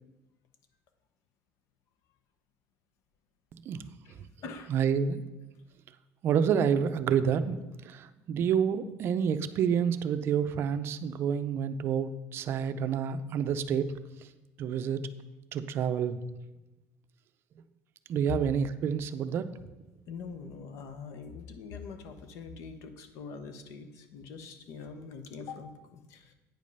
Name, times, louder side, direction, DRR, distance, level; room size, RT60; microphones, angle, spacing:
voice 1, 3.7-4.3 4.7-5.2 6.2-13.9 14.2-14.3 14.6-15.1 15.5-16.2 18.1-19.5, right 7 dB, 45° right, 12 dB, 0.5 m, -29 dB
voice 2, 4.4-4.7 20.1-26.3, left 5 dB, 65° left, 9 dB, 0.9 m, -44 dB
9.1 x 5.3 x 5.3 m, 1.1 s
cardioid pair, 160°, 6 cm